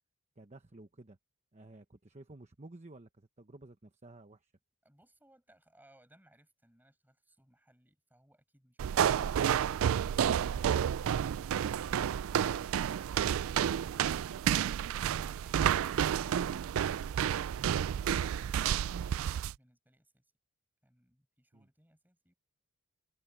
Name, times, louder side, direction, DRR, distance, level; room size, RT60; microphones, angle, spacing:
voice 1, 0.4-1.2 1.5-4.5 21.5-21.7, right 2 dB, 30° right, 1.0 m, -54 dB
voice 2, 4.8-9.1 20.8-22.3, right 1 dB, 10° right, 6.0 m, -67 dB
sound 1, 8.8-19.5, right 9 dB, 65° right, 0.3 m, -30 dB
open air
head